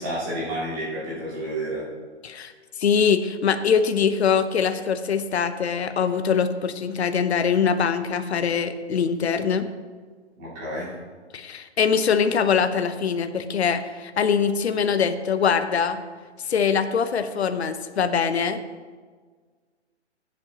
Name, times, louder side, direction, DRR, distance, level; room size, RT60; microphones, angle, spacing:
voice 1, 0.0-1.9 10.4-11.0, right 1 dB, 15° right, -7 dB, 2.5 m, -30 dB
voice 2, 2.8-9.7 11.3-16.0 16.5-18.6, left 6 dB, 65° left, 9 dB, 0.9 m, -23 dB
15.0 x 7.6 x 2.9 m, 1.5 s
hypercardioid pair, 175°, 35 cm